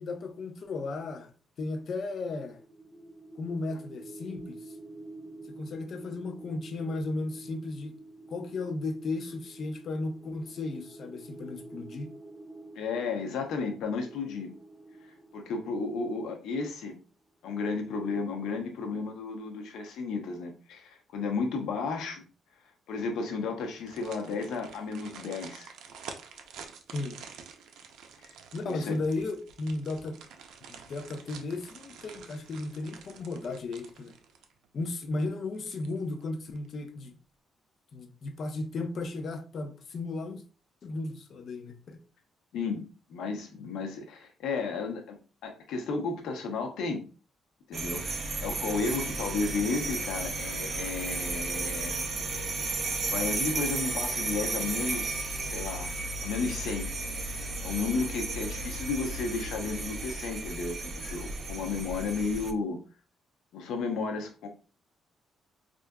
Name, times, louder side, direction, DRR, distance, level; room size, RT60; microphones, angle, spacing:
voice 1, 0.0-1.3 1.6-2.6 3.4-4.7 5.5-8.0 8.3-12.1 26.9-27.2 28.5-30.2 30.7-34.1 34.7-37.2 37.9-40.4 40.8-42.0, left 3 dB, 45° left, 0.5 m, -35 dB
sound 1, 2.5-17.0, right 2 dB, 5° right, 1.0 m, -49 dB
voice 2, 12.7-14.5 15.3-17.0 17.4-22.2 22.9-25.7 28.6-29.0 42.5-47.0 47.7-52.1 53.0-55.9 56.2-56.9 57.3-62.8 63.5-64.5, left 4 dB, 90° left, 0.7 m, -33 dB
sound 2, 23.7-34.7 35.0-35.1 35.5-36.2 36.5-36.7, right 6 dB, 85° right, 0.5 m, -49 dB
sound 3, 47.7-62.5, right 3 dB, 35° right, 0.5 m, -34 dB
4.4 x 2.5 x 2.2 m
cardioid pair, 145°, 0 cm